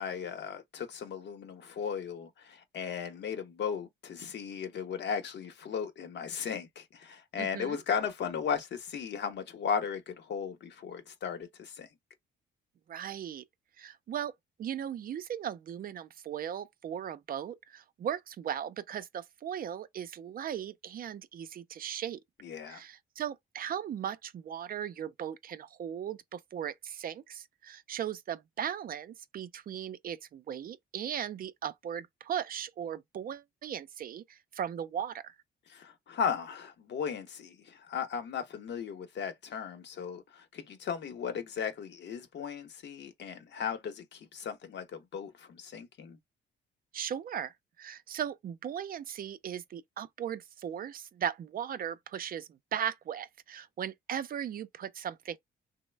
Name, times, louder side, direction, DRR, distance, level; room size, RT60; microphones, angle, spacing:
voice 1, 0.0-11.9 22.4-22.8 35.7-46.2, left 7 dB, 60° left, 0.8 m, -36 dB
voice 2, 7.4-7.8 12.9-13.4 13.8-14.3 14.6-22.2 22.7-35.3 46.9-47.5 47.8-55.4, right 9 dB, 45° right, 0.4 m, -37 dB
3.1 x 2.0 x 3.2 m
cardioid pair, 90°, 20 cm